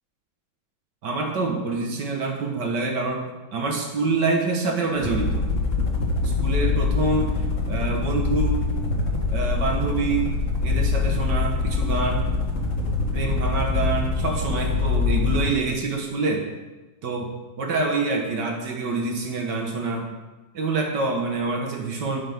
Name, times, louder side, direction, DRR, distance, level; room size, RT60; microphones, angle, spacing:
voice 1, 1.0-5.5 6.2-8.7 9.1-10.3 10.6-12.3 13.1-16.5 17.0-20.1 20.5-22.2, right 3 dB, 75° right, 2 dB, 2.0 m, -26 dB
sound 1, 4.9-15.6, left 4 dB, 50° left, 1.5 m, -24 dB
10.5 x 9.5 x 3.6 m, 1.1 s
omnidirectional pair, 1.9 m